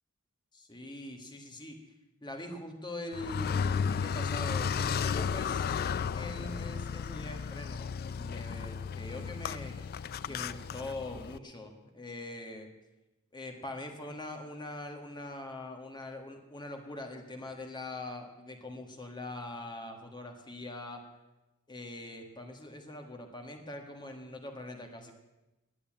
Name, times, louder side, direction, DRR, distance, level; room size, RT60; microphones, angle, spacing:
voice 1, 0.5-1.8 2.2-10.0 10.3-12.7 13.3-21.0 21.7-25.1, left 2 dB, 20° left, 3 dB, 1.6 m, -43 dB
Car, 3.1-11.4, left 6 dB, 45° left, 0.4 m, -34 dB
11.0 x 8.3 x 8.7 m, 1.0 s
head